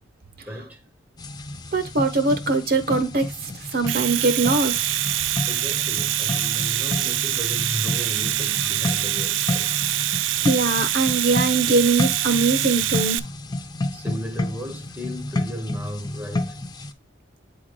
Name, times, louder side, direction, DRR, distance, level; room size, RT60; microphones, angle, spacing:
voice 1, 0.5-0.8 5.5-9.7 13.9-16.6, equal, 10° right, 0.7 m, -35 dB
sound 1, 1.2-16.9, left 2 dB, 20° left, 0.4 m, -31 dB
voice 2, 1.7-5.0 10.2-13.2, right 3 dB, 50° right, 0.8 m, -22 dB
Domestic sounds home sounds, 3.7-13.2, right 14 dB, 80° right, 0.4 m, -25 dB
8.7 x 3.7 x 3.1 m
head